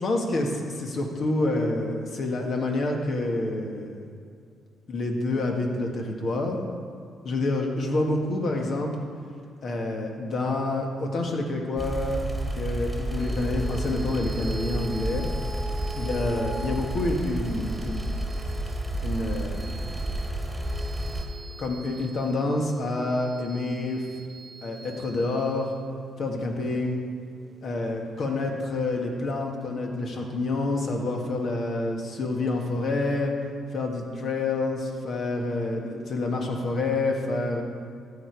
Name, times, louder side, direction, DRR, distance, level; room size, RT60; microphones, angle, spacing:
voice 1, 0.0-3.9 4.9-6.6 7.2-8.9 9.6-12.2 12.5-15.3 15.9-18.0 19.0-20.1 21.6-24.0 24.6-25.7 26.2-27.0 27.6-33.3 33.7-37.6, left 2 dB, 55° left, 1 dB, 1.8 m, -28 dB
sound 1, 11.8-21.2, right 1 dB, 5° right, 1.9 m, -31 dB
sound 2, 13.2-27.9, right 3 dB, 30° right, 0.5 m, -42 dB
14.0 x 7.4 x 4.7 m, 2.3 s
cardioid pair, 90°, 0 cm